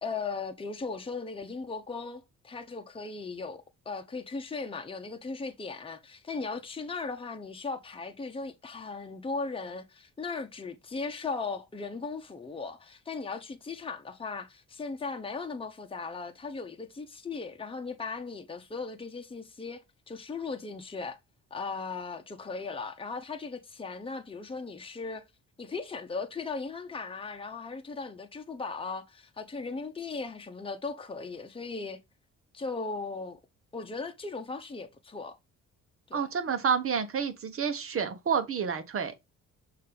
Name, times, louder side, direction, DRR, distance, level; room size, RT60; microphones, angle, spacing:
voice 1, 0.0-21.2 21.5-25.2 25.6-32.0 32.5-33.4 33.7-35.4 36.1-36.3, left 4 dB, 20° left, 1.0 m, -37 dB
voice 2, 36.1-39.1, right 6 dB, 45° right, 1.2 m, -29 dB
6.5 x 2.9 x 5.2 m
cardioid pair, 90°, 30 cm